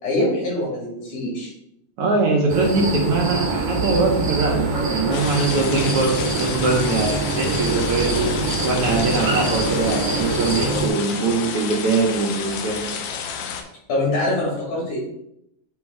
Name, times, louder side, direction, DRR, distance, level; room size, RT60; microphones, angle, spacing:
voice 1, 0.0-1.5 13.9-15.0, left 1 dB, 70° left, -4 dB, 4.0 m, -24 dB
voice 2, 2.0-8.3 8.6-12.9, right 3 dB, 75° right, 0 dB, 1.3 m, -22 dB
sound 1, 2.5-10.9, right 3 dB, 50° right, 1.0 m, -24 dB
sound 2, 5.1-13.6, left 7 dB, 90° left, 2.3 m, -30 dB
7.9 x 3.1 x 4.7 m, 0.78 s
omnidirectional pair, 3.7 m